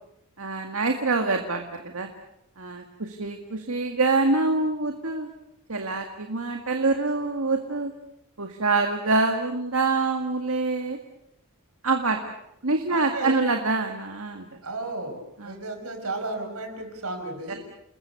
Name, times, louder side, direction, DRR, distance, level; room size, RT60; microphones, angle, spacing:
voice 1, 0.4-2.1 2.6-5.3 5.7-7.9 8.4-11.0 11.8-12.3 12.6-14.5 15.4-15.6 17.5-17.6, right 3 dB, 70° right, 4 dB, 2.0 m, -25 dB
voice 2, 12.9-13.4 14.6-17.6, right 2 dB, 85° right, 5 dB, 5.6 m, -33 dB
29.5 x 21.0 x 6.8 m, 0.78 s
head